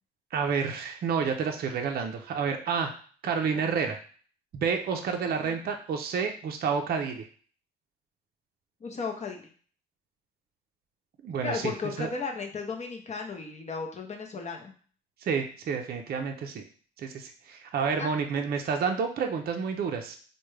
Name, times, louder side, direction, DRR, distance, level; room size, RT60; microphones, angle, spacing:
voice 1, 0.3-2.9 3.2-4.0 4.5-7.3 11.2-11.7 12.0-12.1 15.2-16.6 17.0-20.2, right 6 dB, 50° right, 4 dB, 0.5 m, -29 dB
voice 2, 8.8-9.5 11.4-14.7 18.0-18.1, left 4 dB, 35° left, 2 dB, 0.6 m, -35 dB
3.3 x 2.2 x 3.2 m, 0.44 s
cardioid pair, 90°, 20 cm